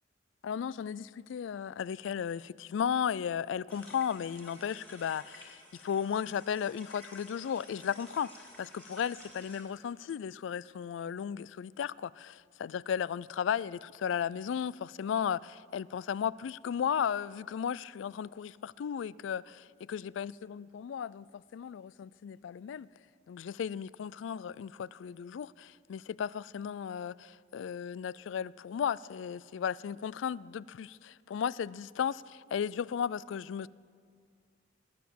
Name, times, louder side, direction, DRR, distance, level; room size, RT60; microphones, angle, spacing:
voice 1, 0.4-22.9 23.3-33.7, left 8 dB, 80° left, 0.3 m, -35 dB
sound 1, 3.7-9.6, equal, 5° left, 2.6 m, -53 dB
19.5 x 9.3 x 7.7 m
head